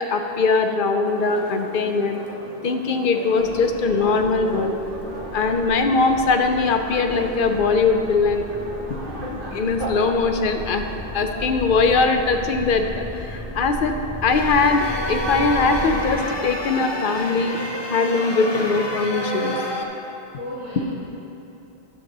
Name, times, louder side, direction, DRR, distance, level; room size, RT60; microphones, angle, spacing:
voice 1, 0.0-2.2 2.6-4.7 5.3-8.5 8.9-9.0 9.5-10.9 11.1-14.0 14.2-17.6 17.9-19.5, left 4 dB, 60° left, 6 dB, 0.8 m, -21 dB
sound 1, 1.0-18.8, equal, 55° right, 1.4 m, -37 dB
sound 2, 3.4-16.1, left 1 dB, 40° right, 2.3 m, -36 dB
sound 3, 14.3-19.8, equal, 30° left, 0.7 m, -29 dB
voice 2, 20.3-20.8, left 1 dB, 15° right, -10 dB, 1.7 m, -35 dB
11.0 x 4.7 x 6.5 m, 2.9 s
omnidirectional pair, 1.1 m